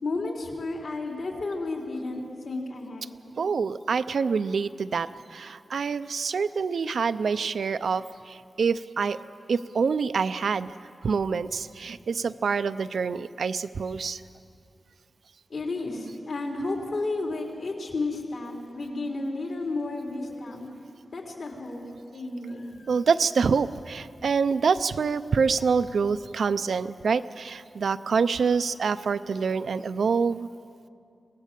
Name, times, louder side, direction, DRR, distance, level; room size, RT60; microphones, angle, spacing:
voice 1, 0.0-3.1 15.5-20.7 21.1-21.8 22.1-22.7, left 2 dB, 70° left, 0 dB, 3.7 m, -32 dB
voice 2, 3.4-9.2 9.5-10.7 11.0-14.2 22.9-30.5, right 5 dB, 85° right, 12 dB, 0.6 m, -26 dB
24.5 x 18.0 x 7.5 m, 2.4 s
wide cardioid pair, 145°, 0 cm